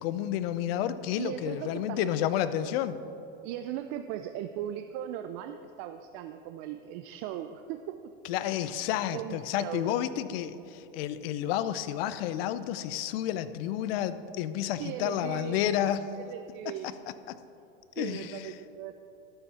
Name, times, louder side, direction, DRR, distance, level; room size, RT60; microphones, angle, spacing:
voice 1, 0.0-3.0 8.2-16.1 16.8-16.9 17.3-17.4 18.0-18.5, left 11 dB, 65° left, 13 dB, 0.6 m, -30 dB
voice 2, 1.2-2.1 2.5-2.7 3.4-8.0 8.4-8.7 9.1-9.9 14.8-17.3 17.9-18.9, right 11 dB, 45° right, 8 dB, 0.4 m, -38 dB
12.5 x 6.9 x 4.2 m, 2.7 s
supercardioid pair, 125°, 32 cm